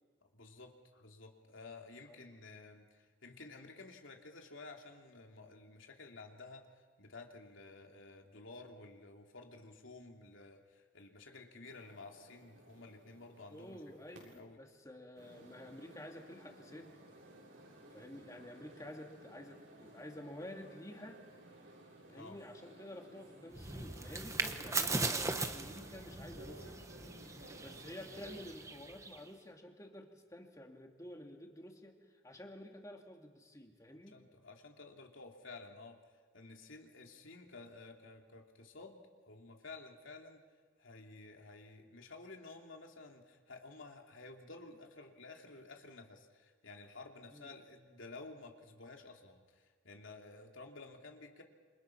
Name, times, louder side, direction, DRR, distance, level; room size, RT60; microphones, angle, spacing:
voice 1, 0.2-13.8 14.2-14.6 22.1-22.4 34.1-36.0 36.3-40.4 40.8-51.4, left 3 dB, 85° left, 2 dB, 2.8 m, -53 dB
sound 1, 11.6-14.4 15.1-28.5, right 1 dB, 85° right, 7.4 m, -57 dB
voice 2, 13.5-16.9 17.9-21.2 22.1-26.8 27.6-34.2 47.3-47.5, left 1 dB, 15° left, 2 dB, 2.6 m, -51 dB
sound 2, 23.5-29.3, right 3 dB, 15° right, 1.1 m, -39 dB
28.0 x 26.5 x 5.9 m, 1.4 s
head